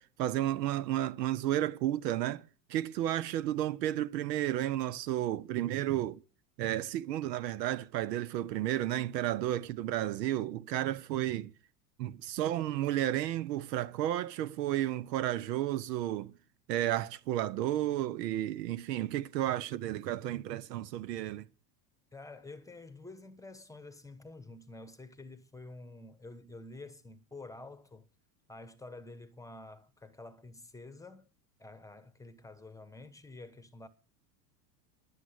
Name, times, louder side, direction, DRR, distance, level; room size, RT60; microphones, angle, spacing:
voice 1, 0.0-2.4 2.7-6.2 6.6-11.5 12.0-16.3 16.7-21.5, right 13 dB, 80° right, 1.0 m, -32 dB
voice 2, 22.1-28.1 28.5-31.3 31.6-33.9, left 2 dB, 5° left, 1.2 m, -49 dB
11.5 x 7.5 x 8.2 m
supercardioid pair, 110°, 48 cm